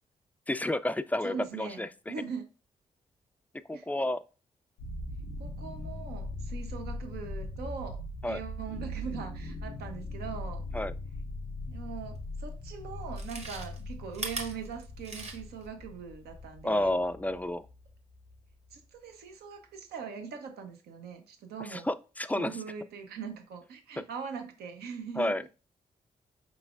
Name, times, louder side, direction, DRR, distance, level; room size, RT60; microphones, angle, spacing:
voice 1, 0.5-1.9 3.7-4.2 8.2-8.4 10.7-10.9 16.6-17.6 21.7-22.5 25.2-25.4, left 1 dB, 10° left, 13 dB, 0.3 m, -30 dB
voice 2, 1.2-2.5 3.7-3.9 5.4-8.0 8.2-10.6 11.7-16.9 18.7-21.9 22.3-25.4, right 6 dB, 75° right, 5 dB, 0.8 m, -41 dB
sound 1, 4.8-18.7, left 1 dB, 85° left, 0.5 m, -40 dB
Chewing mastication, 12.2-12.3 13.0-15.7 16.0-16.1, right 2 dB, 40° right, 1.3 m, -40 dB
4.9 x 3.1 x 2.4 m, 0.34 s
hypercardioid pair, 40°, 16 cm